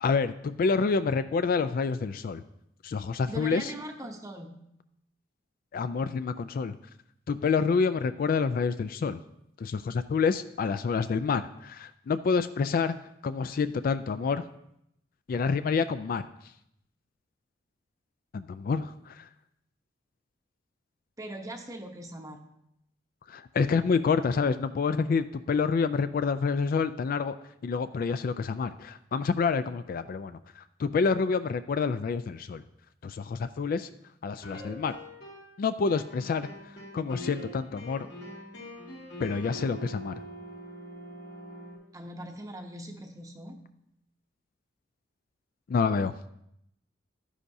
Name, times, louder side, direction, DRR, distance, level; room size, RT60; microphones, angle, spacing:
voice 1, 0.0-2.4 2.8-3.7 5.7-6.8 7.3-9.2 9.6-13.0 13.2-14.4 15.3-16.2 18.3-19.3 23.3-27.3 27.6-30.4 30.8-32.6 33.0-33.9 34.2-35.0 35.6-36.5 36.9-38.1 39.2-40.1 45.7-46.1, left 5 dB, 55° left, 11 dB, 0.3 m, -28 dB
voice 2, 3.3-4.6 21.2-22.4 41.9-43.6, right 1 dB, 20° right, 3 dB, 0.8 m, -40 dB
sound 1, 34.4-35.6 35.9-41.8, equal, 70° left, 2.4 m, -44 dB
11.0 x 9.9 x 2.7 m, 0.77 s
head